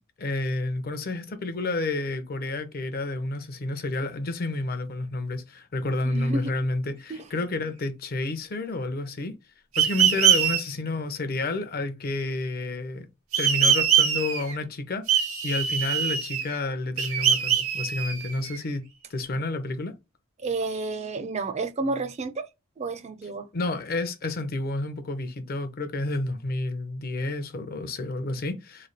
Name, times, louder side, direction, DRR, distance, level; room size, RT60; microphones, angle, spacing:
voice 1, 0.2-9.3 9.8-13.1 13.4-18.8 19.1-19.9 23.5-28.9, left 2 dB, 45° left, 0.6 m, -30 dB
voice 2, 6.0-6.5 7.1-7.2 20.4-22.5 22.8-23.5, right 3 dB, 30° right, 0.4 m, -30 dB
sound 1, 9.7-10.6 13.3-14.5 15.1-16.6 17.0-18.6, right 8 dB, 85° right, 0.9 m, -23 dB
3.2 x 2.2 x 3.9 m
head